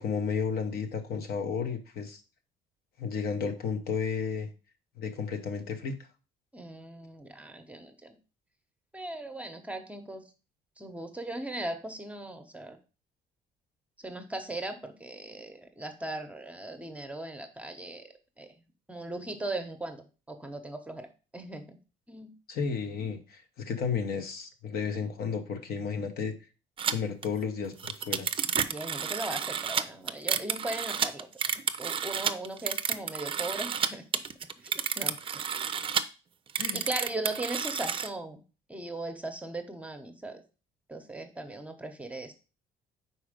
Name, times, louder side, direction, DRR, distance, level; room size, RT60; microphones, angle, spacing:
voice 1, 0.0-2.2 3.0-4.5 5.0-6.0 22.5-26.3 26.9-28.3 36.6-36.8, left 6 dB, 65° left, 6 dB, 1.0 m, -32 dB
voice 2, 6.5-8.2 8.9-10.2 10.8-12.8 14.0-18.0 18.4-18.5 18.9-21.1 21.3-21.8 22.1-22.3 28.7-31.3 31.8-34.0 34.6-35.4 36.7-38.4 38.7-40.4 40.9-42.3, right 2 dB, 10° right, 6 dB, 0.8 m, -38 dB
sound 1, 26.8-26.9 27.2-27.3 27.6-33.9 34.1-36.0 36.5-38.1, right 7 dB, 30° right, 0.4 m, -30 dB
4.9 x 4.4 x 5.0 m, 0.34 s
cardioid pair, 110°, 17 cm